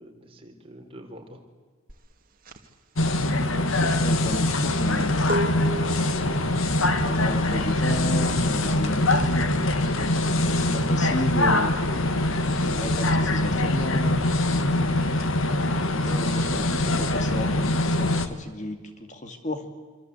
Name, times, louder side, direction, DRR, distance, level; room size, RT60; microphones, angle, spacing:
voice 1, 0.0-1.4 9.1-10.4 15.7-16.4, equal, 25° right, 3 dB, 3.9 m, -44 dB
sound 1, 1.9-12.1 12.4-16.6, equal, 40° right, 2.2 m, -37 dB
sound 2, 3.0-18.3, left 1 dB, 70° left, 1.9 m, -23 dB
voice 2, 3.4-6.0 7.0-9.5 10.3-11.7 12.5-14.2 14.5-14.9 15.8-19.7, left 1 dB, 35° left, 7 dB, 2.3 m, -33 dB
26.5 x 26.0 x 8.4 m, 1.4 s
head